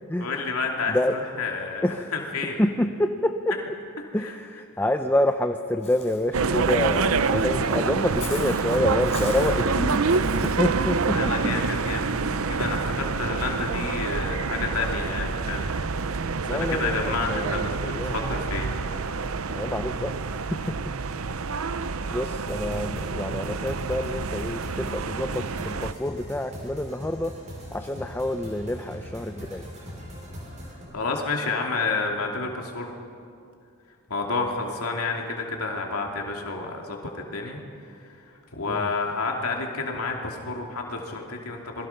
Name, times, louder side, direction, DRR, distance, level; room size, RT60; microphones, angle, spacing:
voice 1, 0.2-2.6 4.2-4.3 11.1-15.7 16.5-19.1 30.9-32.9 34.1-37.6 37.9-38.2 38.5-41.9, left 3 dB, 85° left, 1 dB, 2.7 m, -30 dB
voice 2, 2.6-3.5 4.1-10.0 10.4-11.5 12.6-12.9 16.4-17.7 18.0-18.2 19.5-20.8 21.6-21.8 22.1-27.3 27.7-29.7 38.7-38.9, left 1 dB, 10° left, 7 dB, 0.6 m, -27 dB
Walk footsteps / Bird, 5.8-10.6, left 6 dB, 30° left, 4.6 m, -43 dB
sound 1, 6.3-25.9, right 4 dB, 70° right, 0.8 m, -27 dB
sound 2, 22.5-30.8, equal, 30° right, 6.6 m, -40 dB
27.5 x 21.0 x 5.9 m, 2.4 s
head